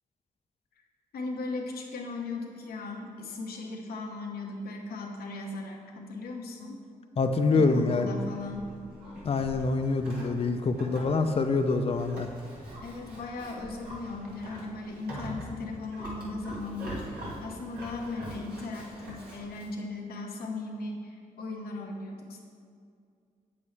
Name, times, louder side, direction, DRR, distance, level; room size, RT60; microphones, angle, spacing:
voice 1, 1.1-6.8 7.5-8.7 12.8-22.4, left 3 dB, 85° left, 1 dB, 0.9 m, -37 dB
voice 2, 7.2-8.1 9.2-12.3, left 3 dB, 40° left, 6 dB, 0.5 m, -25 dB
Livestock farm animals working animals, 8.1-19.7, right 1 dB, 85° right, 1.7 m, -44 dB
8.3 x 7.1 x 3.2 m, 2.3 s
cardioid pair, 55°, 15 cm